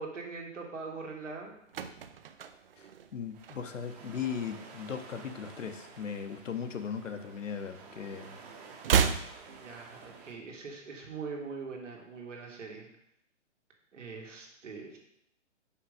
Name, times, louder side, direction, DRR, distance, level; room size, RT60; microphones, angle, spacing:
voice 1, 0.0-1.5 9.5-12.9 13.9-15.0, right 4 dB, 75° right, 0 dB, 2.0 m, -42 dB
sound 1, 1.3-4.0 4.3-4.6 4.9-6.3 6.6-10.3 10.6-10.7, right 7 dB, 50° right, 0.5 m, -33 dB
voice 2, 2.8-8.4, left 7 dB, 80° left, 7 dB, 1.0 m, -38 dB
sound 2, 3.3-10.3, right 4 dB, 30° right, 1.0 m, -51 dB
5.6 x 5.2 x 5.0 m, 0.76 s
hypercardioid pair, 145°, 37 cm